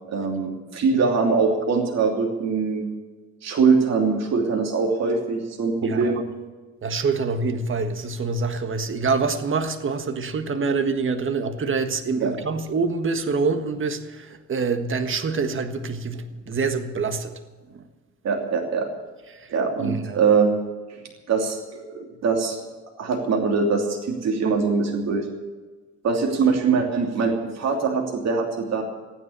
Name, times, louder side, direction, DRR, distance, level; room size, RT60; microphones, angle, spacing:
voice 1, 0.1-2.9 3.4-6.2 12.2-12.3 18.2-18.9 19.5-20.5 20.9-21.0 21.3-22.6 23.0-25.3 26.0-28.8, right 4 dB, 60° right, 1 dB, 2.9 m, -22 dB
voice 2, 6.8-17.3 17.7-17.8 19.8-20.2, right 4 dB, 40° right, 8 dB, 1.6 m, -26 dB
15.5 x 9.8 x 8.8 m, 1.3 s
cardioid pair, 90°, 30 cm